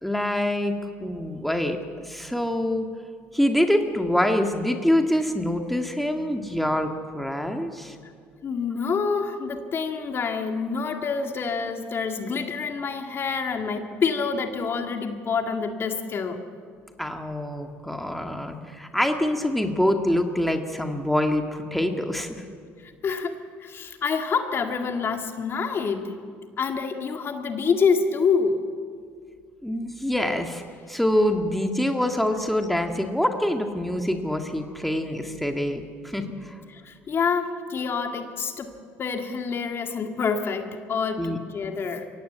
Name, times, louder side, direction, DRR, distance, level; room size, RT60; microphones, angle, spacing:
voice 1, 0.0-0.7 1.0-2.9 3.3-8.0 17.0-22.4 29.6-30.6 30.9-36.6 41.2-41.4, left 1 dB, ahead, 4 dB, 2.1 m, -25 dB
voice 2, 8.4-16.4 22.8-26.2 26.6-28.6 36.7-38.7 39.0-42.1, left 5 dB, 45° left, 5 dB, 2.2 m, -27 dB
23.0 x 17.5 x 8.2 m, 2.1 s
supercardioid pair, 75°, 6 cm